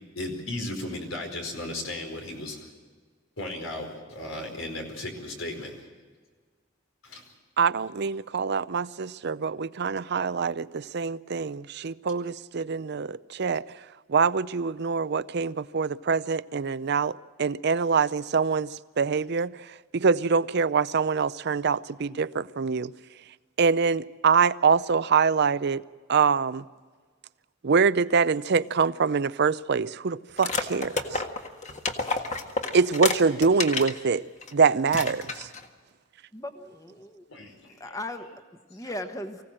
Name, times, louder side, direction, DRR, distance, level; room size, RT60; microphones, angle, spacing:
voice 1, 0.1-2.7 3.4-5.8 7.0-7.2 20.3-20.4 37.3-37.5 37.8-37.9 38.8-39.1, left 1 dB, 85° left, 4.9 m, -35 dB
voice 2, 7.6-13.6 14.1-19.5 19.9-22.9 23.6-25.8 26.1-26.6 27.6-31.2 32.7-34.2 34.5-35.5, right 5 dB, 55° right, 0.5 m, -24 dB
sound 1, 30.4-34.0 34.4-34.5 34.9-35.7, left 3 dB, 35° left, 1.7 m, -30 dB
voice 3, 36.3-37.2 37.8-38.3 38.7-39.4, left 1 dB, 15° left, 1.3 m, -37 dB
24.5 x 16.5 x 7.6 m
head